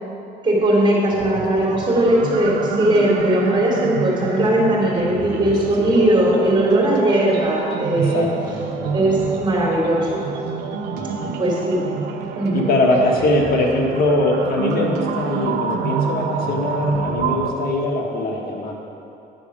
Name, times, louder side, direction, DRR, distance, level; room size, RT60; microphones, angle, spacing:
voice 1, 0.4-8.3 8.9-10.2 11.4-11.8 12.3-12.6, right 1 dB, 25° right, -3 dB, 2.9 m, -19 dB
sound 1, 1.1-17.5, right 5 dB, 85° right, 0.9 m, -28 dB
voice 2, 7.9-9.2 10.9-11.4 12.5-18.7, left 1 dB, 65° left, 0 dB, 1.6 m, -22 dB
9.9 x 7.2 x 6.1 m, 2.7 s
cardioid pair, 110°, 17 cm